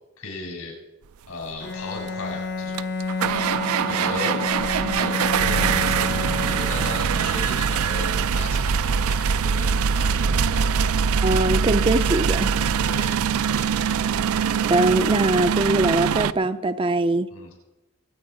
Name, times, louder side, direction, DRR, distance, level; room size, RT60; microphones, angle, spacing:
voice 1, 0.2-0.7 1.3-2.8 3.9-4.4 4.9-10.8 12.8-14.0 17.3-17.5, left 2 dB, 85° left, 7.0 m, -37 dB
Bowed string instrument, 1.6-7.4, left 4 dB, 50° left, 0.7 m, -30 dB
sound 1, 2.1-2.2 2.7-16.3, right 6 dB, 80° right, 0.4 m, -23 dB
voice 2, 11.2-12.5 14.7-17.3, right 2 dB, 25° right, 0.4 m, -22 dB
23.5 x 8.7 x 5.1 m
head